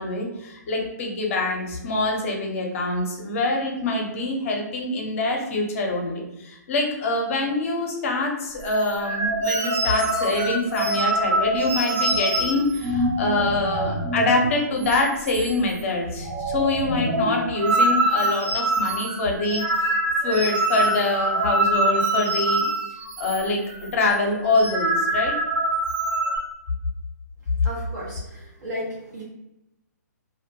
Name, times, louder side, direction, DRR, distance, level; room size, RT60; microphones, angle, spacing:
voice 1, 0.0-19.6 20.2-22.7 23.2-23.6 23.9-25.3, left 2 dB, 45° left, 0 dB, 0.6 m, -25 dB
sound 1, 8.6-14.5 14.8-15.0 15.2-15.8 16.1-23.4 23.7-23.9 24.4-26.4, right 1 dB, 35° right, 0.4 m, -24 dB
voice 2, 27.6-29.2, equal, 70° right, -8 dB, 0.8 m, -34 dB
2.2 x 2.1 x 2.7 m, 0.89 s
hypercardioid pair, 135°, 10 cm